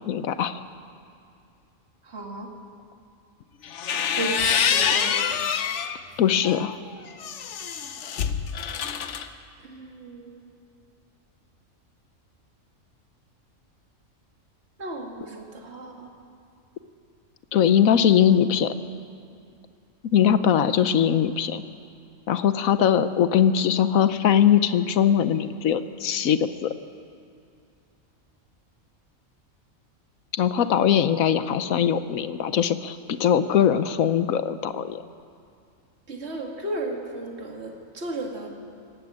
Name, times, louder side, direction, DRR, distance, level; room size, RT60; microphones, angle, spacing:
voice 1, 0.1-0.6 6.2-6.7 17.5-18.7 20.0-21.6 22.3-26.7 30.3-35.0, left 9 dB, 90° left, 12 dB, 1.2 m, -21 dB
voice 2, 2.0-2.5 4.1-5.3 9.6-10.5 14.8-16.1 36.1-38.5, right 2 dB, 55° right, 1 dB, 2.5 m, -34 dB
sound 1, 3.6-6.0 6.4-9.3, left 7 dB, 65° left, 1.1 m, -26 dB
19.5 x 15.5 x 8.6 m, 2.5 s
omnidirectional pair, 1.4 m